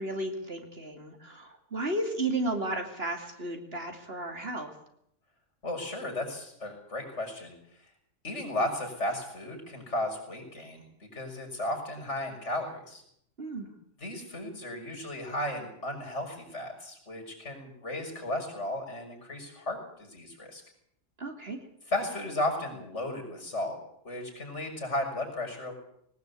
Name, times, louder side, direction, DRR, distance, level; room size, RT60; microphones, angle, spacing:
voice 1, 0.0-4.7 13.4-13.7 21.2-21.6, right 2 dB, 55° right, 4 dB, 3.0 m, -33 dB
voice 2, 5.6-7.5 8.2-10.8 11.1-13.0 14.0-20.6 21.9-23.8 24.0-25.7, left 1 dB, 70° left, 2 dB, 6.5 m, -34 dB
21.0 x 18.5 x 8.5 m, 0.73 s
omnidirectional pair, 1.3 m